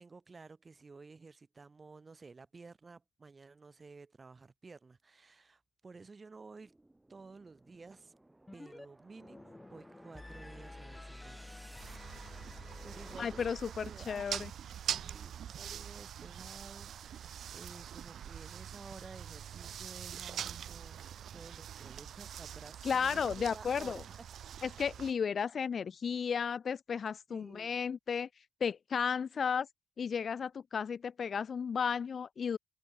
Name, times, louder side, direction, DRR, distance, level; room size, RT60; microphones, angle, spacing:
voice 1, 0.0-6.7 7.1-8.1 8.5-11.6 12.8-14.3 14.8-24.3 27.3-27.7, right 4 dB, 30° right, 6.2 m, -53 dB
sound 1, 6.6-13.8, right 2 dB, 10° right, 7.1 m, -60 dB
sound 2, 8.5-8.9 9.1-14.1, left 2 dB, 15° left, 1.3 m, -50 dB
sound 3, 11.8-25.1, right 9 dB, 65° right, 2.0 m, -44 dB
voice 2, 13.2-14.5 22.8-24.0 24.6-28.3 28.6-29.7 30.0-32.6, left 6 dB, 45° left, 0.9 m, -34 dB
cardioid pair, 90°, 0 cm